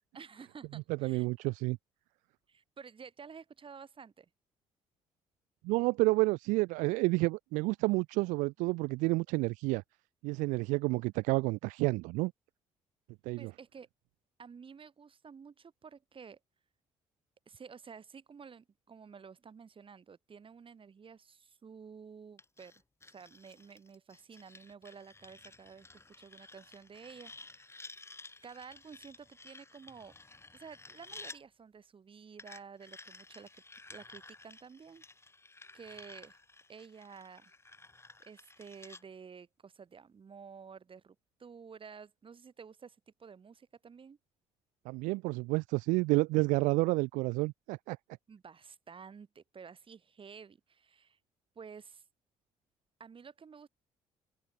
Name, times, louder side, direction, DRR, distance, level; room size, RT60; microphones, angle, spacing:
voice 1, 0.2-1.3 2.5-4.3 13.4-13.9 14.4-16.4 17.5-22.7 23.1-27.7 28.4-30.1 30.5-33.6 33.9-35.0 35.7-36.4 36.7-37.5 38.2-44.2 48.3-51.2 51.6-52.0 53.0-53.7, right 6 dB, 45° right, 5.2 m, -51 dB
voice 2, 1.0-1.8 5.6-9.8 10.2-12.3 13.2-13.5 44.9-48.0, right 24 dB, 85° right, 0.4 m, -30 dB
sound 1, 22.4-31.4 32.4-39.0, left 3 dB, 20° left, 4.7 m, -53 dB
open air
supercardioid pair, 65°, 13 cm